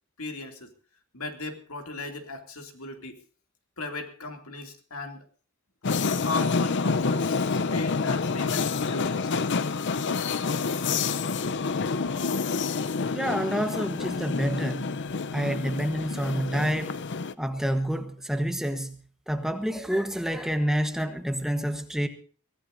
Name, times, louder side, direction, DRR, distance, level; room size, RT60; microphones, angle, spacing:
voice 1, 0.2-0.7 1.1-3.2 3.8-5.2 6.2-9.4, left 3 dB, 75° left, 2.7 m, -37 dB
sound 1, 5.8-17.3, left 4 dB, 55° left, 0.6 m, -28 dB
voice 2, 12.2-12.6 13.1-14.9 15.3-17.0 17.4-19.0 19.3-22.1, equal, ahead, 1.2 m, -28 dB
23.0 x 16.0 x 2.7 m
head